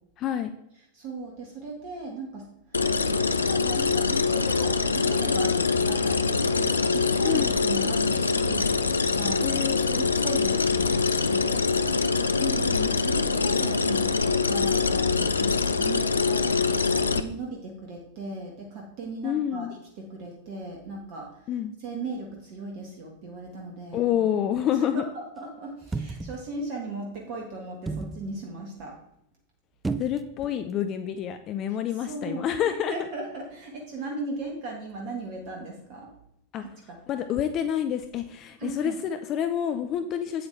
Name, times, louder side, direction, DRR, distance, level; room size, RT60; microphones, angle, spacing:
voice 1, 0.2-0.5 7.2-7.5 9.4-10.0 12.4-13.0 19.2-19.8 21.5-21.7 23.9-25.0 30.0-32.9 36.5-36.6 37.1-40.5, left 9 dB, 35° left, 8 dB, 0.6 m, -28 dB
voice 2, 0.9-2.5 3.0-11.6 12.4-16.5 16.9-19.7 20.0-21.5 21.8-24.3 24.9-29.0 32.1-32.5 32.9-36.1 36.6-37.0 38.6-39.0, right 2 dB, 45° right, 0 dB, 1.7 m, -37 dB
sound 1, 2.7-17.2, left 4 dB, 75° left, 0.5 m, -24 dB
sound 2, 25.8-26.5 27.9-28.2 29.8-30.5 30.8-30.9, right 3 dB, 10° right, 0.6 m, -32 dB
8.7 x 8.6 x 3.4 m, 0.81 s
figure-of-eight pair, 90°, 0 cm